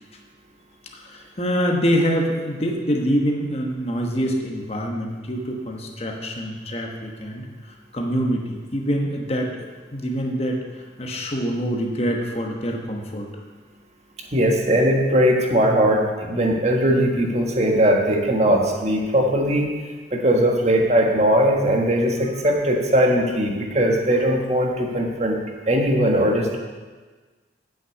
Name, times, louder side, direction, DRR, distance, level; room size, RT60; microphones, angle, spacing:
voice 1, 0.9-13.3, equal, 35° left, 1 dB, 1.2 m, -25 dB
voice 2, 14.3-19.7 20.1-25.4 25.7-26.6, equal, 35° right, 1 dB, 1.4 m, -19 dB
8.6 x 6.4 x 8.3 m, 1.4 s
head